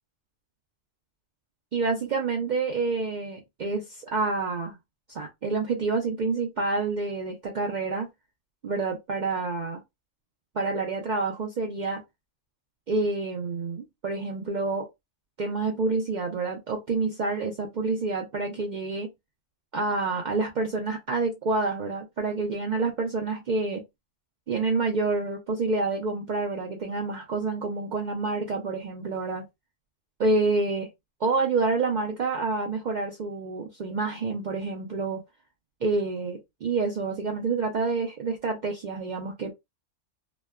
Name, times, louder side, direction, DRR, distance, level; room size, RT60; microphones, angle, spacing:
voice 1, 1.7-4.8 5.1-8.1 8.6-9.8 10.6-12.0 12.9-14.9 15.4-19.1 19.7-23.8 24.5-29.4 30.2-30.9 31.2-35.2 35.8-39.5, right 3 dB, 70° right, 0.4 m, -28 dB
2.9 x 2.1 x 2.2 m
omnidirectional pair, 1.3 m